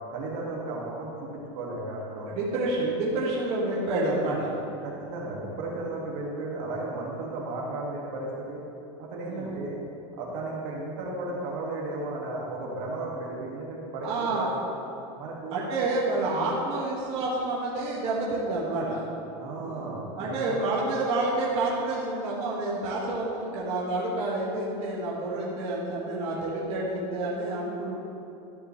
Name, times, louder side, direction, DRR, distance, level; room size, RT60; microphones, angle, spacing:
voice 1, 0.1-2.3 4.8-8.6 9.0-9.8 10.2-14.5 15.2-15.6 19.4-20.6, right 2 dB, 60° right, -3 dB, 2.0 m, -34 dB
voice 2, 2.3-4.6 9.2-9.5 14.0-14.5 15.5-19.0 19.6-27.9, right 2 dB, 40° right, -6 dB, 1.8 m, -29 dB
13.5 x 6.7 x 3.2 m, 2.9 s
supercardioid pair, 145°, 15 cm